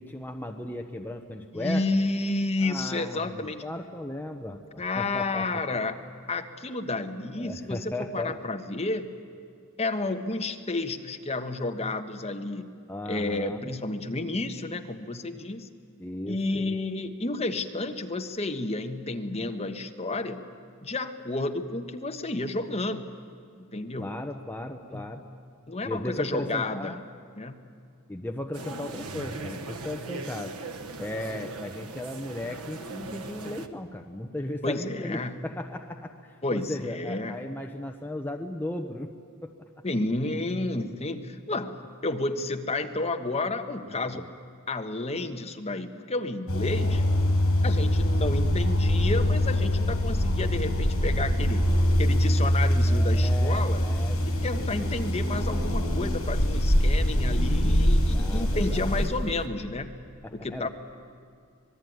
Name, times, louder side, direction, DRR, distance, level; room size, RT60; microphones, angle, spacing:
voice 1, 0.0-1.9 2.6-5.6 7.4-8.4 12.9-13.7 16.0-16.7 24.0-25.2 25.8-27.0 28.1-30.6 31.0-39.1 39.4-39.7 43.9-44.3 52.4-55.1 58.1-59.0 60.2-60.7, left 1 dB, 10° left, 3 dB, 1.0 m, -36 dB
voice 2, 1.5-3.6 4.8-6.0 6.3-9.1 9.8-12.7 13.1-15.7 16.3-20.4 20.8-23.1 23.7-24.1 24.9-25.1 25.7-26.9 27.4-27.6 34.6-35.4 36.4-37.4 39.8-44.3 44.7-47.0 47.6-53.8 54.3-59.9 60.3-60.7, left 2 dB, 30° left, 6 dB, 1.3 m, -31 dB
sound 1, 28.5-33.7, right 3 dB, 85° right, 1.4 m, -39 dB
sound 2, 46.5-59.1, equal, 70° left, 6.3 m, -24 dB
sound 3, 51.6-59.5, right 1 dB, 45° right, 1.3 m, -41 dB
26.0 x 20.5 x 9.4 m, 2.3 s
head